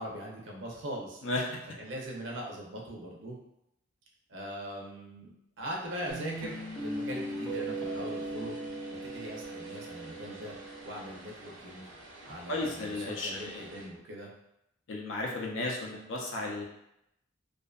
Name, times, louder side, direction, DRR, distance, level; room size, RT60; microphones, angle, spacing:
voice 1, 0.0-1.2 1.8-3.4 4.3-5.3 5.6-8.5 9.0-10.5 10.8-11.9 12.2-14.3, right 1 dB, 60° right, -1 dB, 0.6 m, -41 dB
voice 2, 1.2-1.6 12.5-13.7 14.9-16.7, left 2 dB, 65° left, -1 dB, 0.5 m, -34 dB
Vehicle, 5.9-13.8, right 1 dB, 85° right, 0.8 m, -50 dB
Guitar, 6.1-11.2, right 1 dB, 10° left, 0.6 m, -38 dB
2.6 x 2.4 x 2.3 m, 0.82 s
head